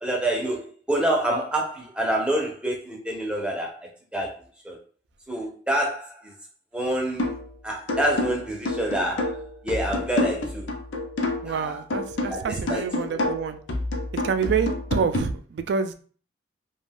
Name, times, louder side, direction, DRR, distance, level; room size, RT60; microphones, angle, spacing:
voice 1, 0.0-4.3 4.6-4.8 5.3-6.3 6.7-7.4 7.6-9.4 9.6-10.6 11.4-11.8 12.3-13.2, right 1 dB, 5° right, -1 dB, 0.5 m, -27 dB
sound 1, 7.2-7.5 7.9-11.6 11.9-15.2, left 2 dB, 90° left, 0.5 m, -28 dB
voice 2, 11.4-13.6 14.1-15.9, right 6 dB, 65° right, 9 dB, 0.3 m, -27 dB
2.4 x 2.2 x 3.4 m, 0.43 s
head